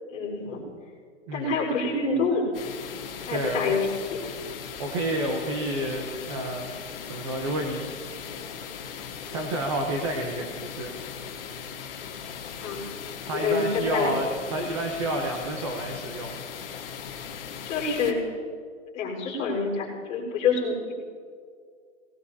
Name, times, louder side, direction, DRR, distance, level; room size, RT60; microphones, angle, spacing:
voice 1, 0.1-0.6 1.3-2.5 3.2-3.9 12.6-12.9 13.3-14.2 17.6-18.2 18.9-20.9, left 4 dB, 20° left, -7 dB, 4.3 m, -27 dB
voice 2, 1.3-1.6 3.3-3.7 4.8-6.7 7.1-7.9 8.2-8.4 9.3-11.0 13.2-16.4, right 1 dB, 25° right, 2 dB, 0.9 m, -30 dB
sound 1, 2.5-18.1, left 7 dB, 45° left, 1.6 m, -39 dB
22.5 x 18.5 x 2.8 m, 2.1 s
hypercardioid pair, 175°, 40 cm